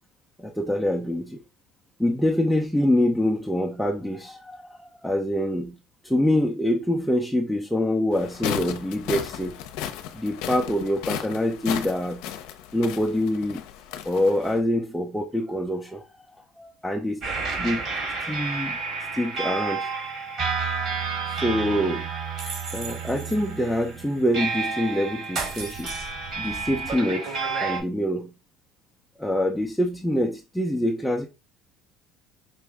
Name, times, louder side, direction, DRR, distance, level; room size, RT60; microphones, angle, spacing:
voice 1, 0.4-1.4 2.0-5.8 6.0-9.6 10.1-12.3 12.7-13.6 14.1-16.0 16.6-17.2 17.6-17.8 18.2-18.8 19.1-19.9 21.3-22.1 22.7-25.9 26.4-28.3 29.2-31.3, left 1 dB, ahead, 0.6 m, -25 dB
sound 1, 8.1-14.6, left 10 dB, 75° left, 0.7 m, -35 dB
sound 2, 17.2-27.8, right 4 dB, 50° right, 2.7 m, -30 dB
5.5 x 2.6 x 3.4 m
supercardioid pair, 85°, 0 cm